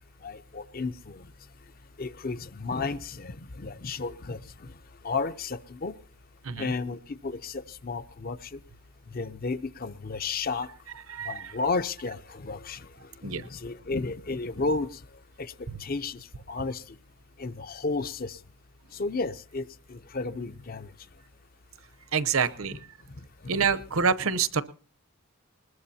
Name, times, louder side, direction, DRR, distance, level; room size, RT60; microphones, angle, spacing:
voice 1, 0.2-1.2 2.0-4.4 5.0-5.9 6.6-8.4 9.1-10.7 11.3-12.9 13.2-14.9 15.4-15.5 15.8-16.2 16.5-16.8 17.4-18.4 19.0-20.9, left 3 dB, 45° left, 13 dB, 0.6 m, -32 dB
voice 2, 22.1-22.8 23.5-24.6, right 6 dB, 80° right, 12 dB, 0.8 m, -26 dB
20.5 x 20.5 x 2.8 m, 0.41 s
head